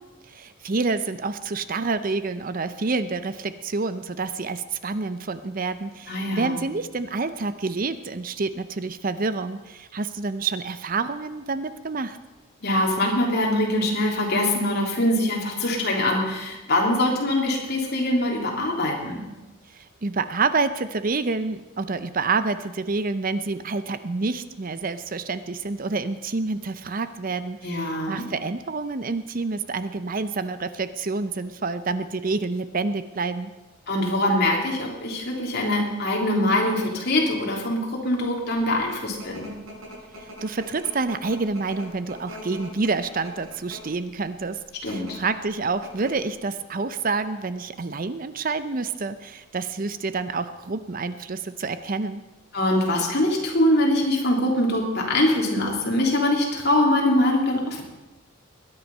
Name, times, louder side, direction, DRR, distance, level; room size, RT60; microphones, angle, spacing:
voice 1, 0.3-12.2 19.7-33.5 40.2-44.6 44.8-52.2, right 3 dB, 40° right, 12 dB, 0.6 m, -28 dB
voice 2, 6.1-6.6 12.6-19.2 27.6-28.3 33.9-39.5 44.8-45.2 52.5-57.8, left 1 dB, 50° left, -1 dB, 3.3 m, -23 dB
sound 1, 38.6-44.0 44.7-45.1 45.5-45.6 45.8-46.3, equal, 80° right, 5.8 m, -42 dB
21.0 x 10.0 x 5.5 m, 1.1 s
head